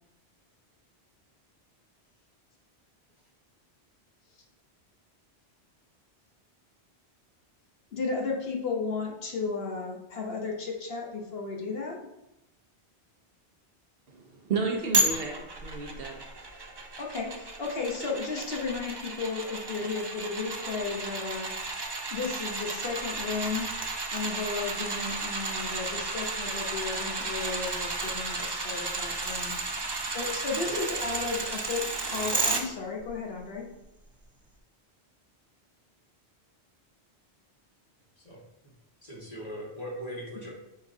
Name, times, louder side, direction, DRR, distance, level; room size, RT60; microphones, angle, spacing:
voice 1, 7.9-12.1 17.0-23.7 24.1-29.6 30.1-33.7, left 4 dB, 65° left, -1 dB, 1.1 m, -34 dB
voice 2, 14.1-16.2, right 4 dB, 60° right, 2 dB, 1.0 m, -32 dB
sound 1, 14.9-32.6 33.0-33.1, right 2 dB, 30° right, 0.5 m, -33 dB
voice 3, 39.0-40.5, equal, 35° left, -5 dB, 1.9 m, -39 dB
8.7 x 4.0 x 2.7 m, 0.89 s
omnidirectional pair, 1.1 m